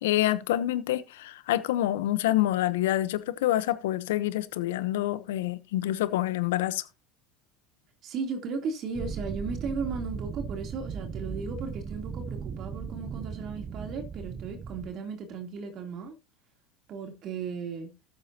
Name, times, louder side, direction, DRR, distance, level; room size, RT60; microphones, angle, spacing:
voice 1, 0.0-6.8, left 14 dB, 75° left, 0.9 m, -27 dB
voice 2, 8.0-16.1 16.9-17.9, right 5 dB, 50° right, 3.3 m, -36 dB
sound 1, 8.9-14.9, right 6 dB, 35° right, 0.8 m, -37 dB
13.5 x 9.0 x 2.9 m
hypercardioid pair, 80°, 0 cm